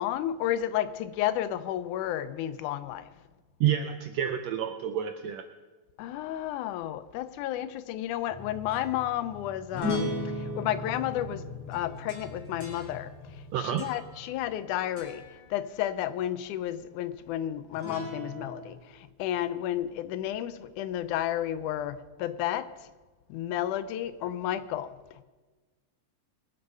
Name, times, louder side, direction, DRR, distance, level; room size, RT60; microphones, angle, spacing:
voice 1, 0.0-3.1 6.0-22.7 23.3-25.2, left 12 dB, 85° left, 2.1 m, -32 dB
voice 2, 3.6-5.5 13.5-13.9, right 10 dB, 75° right, 1.6 m, -29 dB
sound 1, 8.3-14.7 15.0-15.4 17.7-18.7, left 1 dB, 5° left, 3.9 m, -37 dB
22.0 x 8.0 x 5.4 m
omnidirectional pair, 3.5 m